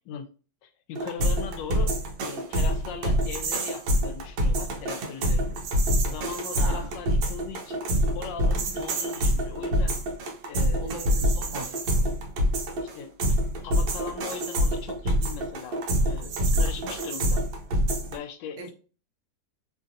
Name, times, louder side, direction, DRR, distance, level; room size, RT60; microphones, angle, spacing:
voice 1, 0.6-2.0 2.2-5.6 6.0-7.8 8.1-10.0 10.5-11.0 11.4-11.5 12.8-17.4 18.1-18.7, left 6 dB, 80° left, 7 dB, 1.2 m, -39 dB
sound 1, 1.0-18.2, equal, 85° right, 1.4 m, -26 dB
voice 2, 6.5-6.9 10.8-12.0 18.6-18.7, right 1 dB, 70° right, 2 dB, 1.3 m, -38 dB
3.4 x 2.6 x 2.5 m, 0.37 s
omnidirectional pair, 2.0 m